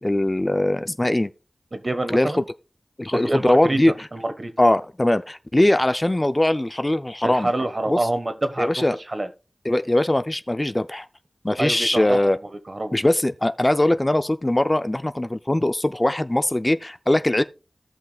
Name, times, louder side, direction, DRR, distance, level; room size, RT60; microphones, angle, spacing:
voice 1, 0.0-1.3 2.1-2.3 3.0-3.9 4.6-7.5 7.9-8.0 8.6-9.0 9.7-11.1 11.4-12.4 12.9-17.4, left 1 dB, 25° left, 0.5 m, -21 dB
voice 2, 1.7-2.5 3.1-3.8 4.1-4.5 7.2-9.3 11.6-12.3 12.7-12.9, right 2 dB, 45° right, 1.3 m, -26 dB
17.0 x 5.7 x 2.3 m
wide cardioid pair, 50°, 0 cm